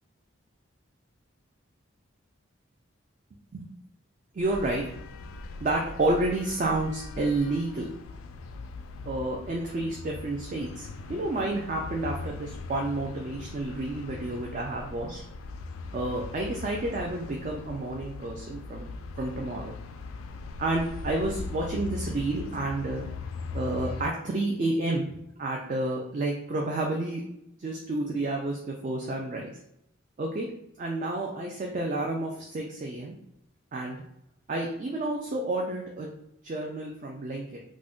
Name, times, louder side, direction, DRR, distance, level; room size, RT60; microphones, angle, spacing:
voice 1, 4.3-5.0 5.6-7.9 9.1-15.2 15.9-18.9 19.2-19.7 20.6-23.0 23.5-27.2 27.6-29.6 30.2-30.5 30.8-33.1 33.7-34.0 34.5-36.1 36.4-37.6, right 2 dB, 40° right, -1 dB, 0.3 m, -30 dB
sound 1, 4.4-24.1, left 3 dB, 90° left, 0.3 m, -40 dB
2.5 x 2.1 x 3.6 m, 0.78 s
head